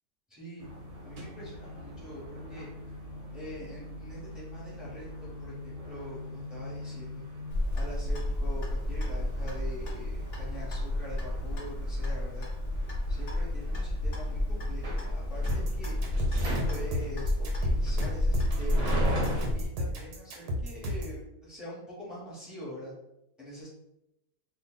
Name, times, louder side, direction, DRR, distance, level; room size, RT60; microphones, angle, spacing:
voice 1, 0.3-0.7 1.0-2.7 3.3-7.2 7.7-12.5 13.1-16.0 16.4-18.9 19.5-22.9 23.4-23.7, equal, ahead, -7 dB, 1.2 m, -44 dB
sound 1, 0.6-19.4, equal, 55° right, 1.1 m, -40 dB
Clock, 7.5-19.6, left 1 dB, 50° left, 0.8 m, -31 dB
sound 2, 15.5-21.2, left 1 dB, 85° right, 1.3 m, -33 dB
2.7 x 2.5 x 4.0 m, 0.86 s
omnidirectional pair, 1.7 m